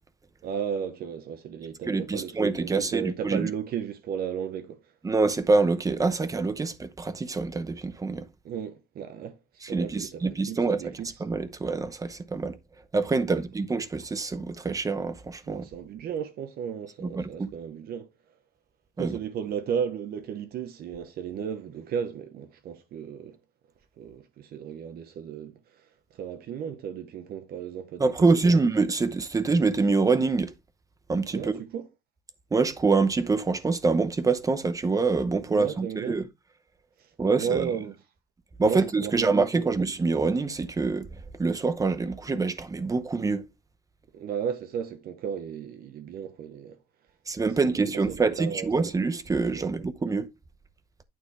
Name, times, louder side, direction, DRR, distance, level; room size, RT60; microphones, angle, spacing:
voice 1, 0.4-4.8 8.4-9.4 9.7-11.1 13.3-13.4 15.5-18.1 19.0-23.4 24.0-25.6 26.1-28.6 31.3-31.9 35.5-36.2 37.2-37.9 38.6-39.7 44.1-46.8 47.4-48.9 49.6-49.7, right 8 dB, 65° right, 1.1 m, -34 dB
voice 2, 1.9-3.5 5.0-8.3 9.6-12.6 12.9-15.7 17.0-17.5 19.0-19.2 28.0-30.5 31.1-31.5 32.5-36.3 37.2-37.7 38.6-43.4 47.3-50.3, right 4 dB, 20° right, 0.8 m, -25 dB
9.2 x 3.4 x 4.8 m
cardioid pair, 110°, 17 cm